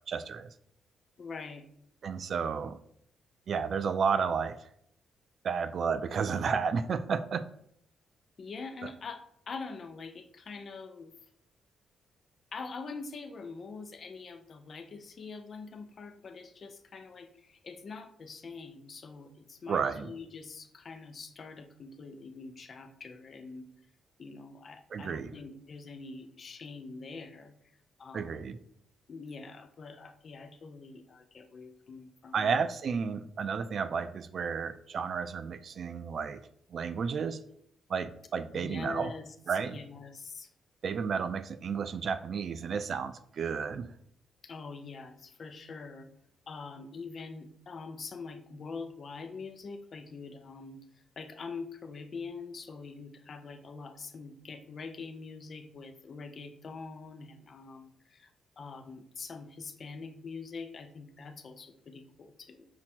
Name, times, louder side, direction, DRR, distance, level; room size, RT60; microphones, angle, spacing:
voice 1, 0.1-0.5 2.0-2.8 3.5-4.6 5.4-7.4 19.7-20.1 24.9-25.3 28.1-28.6 32.3-36.4 36.7-37.4 37.9-39.1 39.5-39.8 40.8-43.9, right 6 dB, 55° right, 12 dB, 0.3 m, -32 dB
voice 2, 1.2-1.7 8.4-11.1 12.5-23.7 24.2-27.5 28.0-28.5 29.1-32.5 38.5-40.5 44.4-46.1 46.5-50.8 51.2-58.3 58.6-62.7, left 4 dB, 50° left, 8 dB, 0.5 m, -44 dB
5.8 x 2.1 x 4.3 m, 0.70 s
cardioid pair, 90°, 0 cm